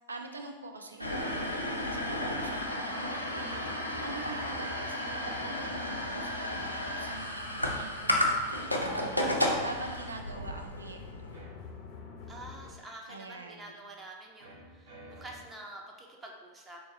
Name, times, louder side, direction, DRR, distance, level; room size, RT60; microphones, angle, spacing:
voice 1, 0.1-11.5 13.1-13.8, right 2 dB, 75° right, 3 dB, 0.4 m, -45 dB
sound 1, 1.0-11.4, left 1 dB, 90° left, 0.4 m, -33 dB
sound 2, 1.7-6.8 8.4-9.1 11.3-12.1 14.4-15.4, right 1 dB, 60° right, 1.1 m, -50 dB
sound 3, 3.4-12.7, left 6 dB, 35° left, 0.5 m, -49 dB
voice 2, 12.3-16.8, right 2 dB, 15° right, 0 dB, 0.5 m, -47 dB
3.4 x 3.0 x 2.8 m, 1.3 s
figure-of-eight pair, 90°, 0 cm